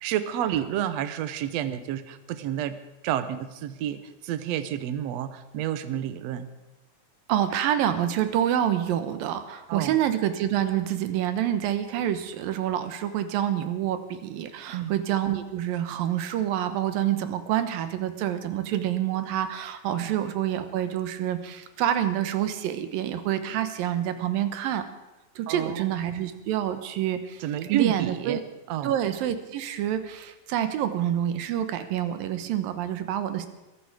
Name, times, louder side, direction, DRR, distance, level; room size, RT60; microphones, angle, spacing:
voice 1, 0.0-2.8 3.0-6.5 9.7-10.0 14.7-14.9 20.0-20.1 25.5-25.8 27.4-28.4 28.7-29.0, right 11 dB, 70° right, 12 dB, 1.7 m, -30 dB
voice 2, 7.3-24.8 25.4-28.4 28.8-33.5, right 11 dB, 85° right, 10 dB, 2.8 m, -27 dB
22.0 x 13.0 x 5.0 m, 1.0 s
omnidirectional pair, 4.0 m